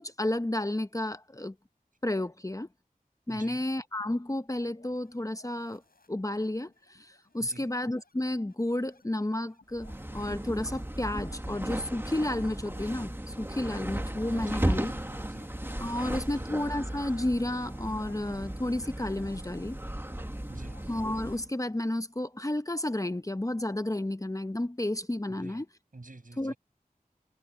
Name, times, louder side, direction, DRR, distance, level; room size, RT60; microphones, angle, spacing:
voice 1, 0.0-1.5 2.0-2.7 3.3-5.8 6.1-14.9 15.8-19.8 20.9-25.7 26.4-26.5, left 1 dB, 20° left, 0.8 m, -32 dB
voice 2, 3.3-3.6 7.4-7.7 14.4-15.5 16.2-16.5 20.5-20.8 25.3-25.6 25.9-26.6, right 2 dB, 65° right, 6.7 m, -48 dB
sound 1, 4.6-21.4, left 3 dB, 80° left, 6.4 m, -62 dB
sound 2, 9.7-21.5, right 1 dB, 15° right, 1.5 m, -35 dB
wide cardioid pair, 45°, 15 cm